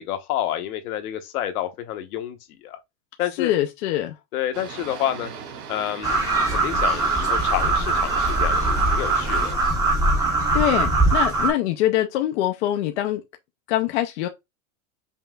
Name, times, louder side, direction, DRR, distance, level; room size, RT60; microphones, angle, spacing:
voice 1, 0.0-2.8 3.2-3.5 4.3-5.3 5.7-6.2 6.5-9.6, left 11 dB, 65° left, 1.0 m, -29 dB
voice 2, 3.4-4.1 10.5-13.2 13.7-14.3, left 13 dB, 45° left, 0.5 m, -23 dB
Boat Water vehicle, 4.5-9.5, right 7 dB, 50° right, 1.9 m, -38 dB
sound 1, 6.0-11.5, right 2 dB, 5° right, 0.7 m, -21 dB
5.5 x 2.9 x 2.3 m
supercardioid pair, 155°, 49 cm